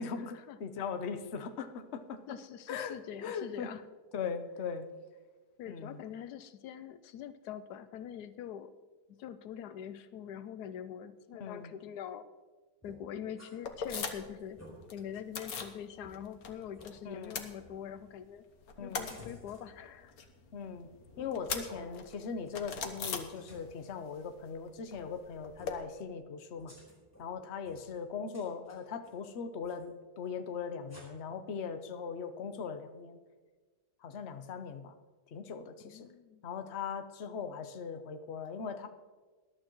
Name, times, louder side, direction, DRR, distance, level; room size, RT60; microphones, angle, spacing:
voice 1, 0.0-2.4 2.7-3.7 4.1-4.9 5.7-6.0 11.4-11.7 17.0-17.4 18.8-19.1 20.5-20.9 21.2-26.8 27.2-33.2 34.0-34.9 35.3-36.1 36.4-38.9, left 6 dB, 50° left, 8 dB, 1.0 m, -40 dB
voice 2, 2.3-3.8 5.6-8.7 9.1-12.3 12.8-14.6 14.9-18.5 18.8-20.2 35.8-36.4, left 9 dB, 85° left, 13 dB, 1.2 m, -44 dB
sound 1, 12.8-13.5 13.9-14.0 14.4-14.7 15.3-15.4 16.0-16.1 16.7-16.9 19.1-19.6 21.0-21.3 21.7-21.8 22.5-22.9 23.1-23.7 24.9-25.1 25.5-25.8 26.5-27.2 27.6-28.0 28.3-29.1 29.6-29.9 30.9-31.0, equal, 10° left, 4.4 m, -55 dB
Car Keys Click Metal, 13.6-14.4 14.7-15.8 16.1-16.9 17.2-18.2 18.5-23.9 24.1-25.7, left 6 dB, 70° left, 1.5 m, -41 dB
20.0 x 11.5 x 3.1 m, 1.4 s
omnidirectional pair, 1.7 m